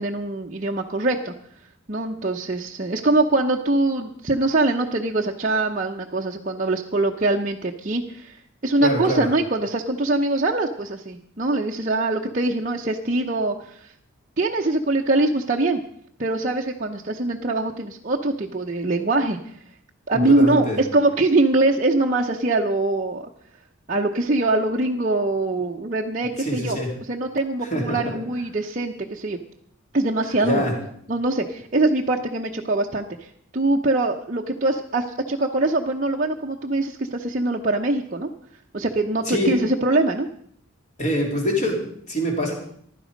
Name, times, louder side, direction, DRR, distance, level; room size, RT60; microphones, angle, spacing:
voice 1, 0.0-1.3 1.9-13.9 14.4-15.8 16.2-19.4 20.1-23.3 23.9-29.4 29.9-30.7 31.1-38.3 38.7-40.3, right 2 dB, 35° right, -1 dB, 0.7 m, -23 dB
voice 2, 8.8-9.3 20.1-20.8 26.4-26.9 27.6-28.2 30.4-30.8 39.3-39.6 41.0-42.5, equal, 35° left, 1 dB, 3.3 m, -24 dB
15.5 x 12.0 x 5.2 m, 0.65 s
head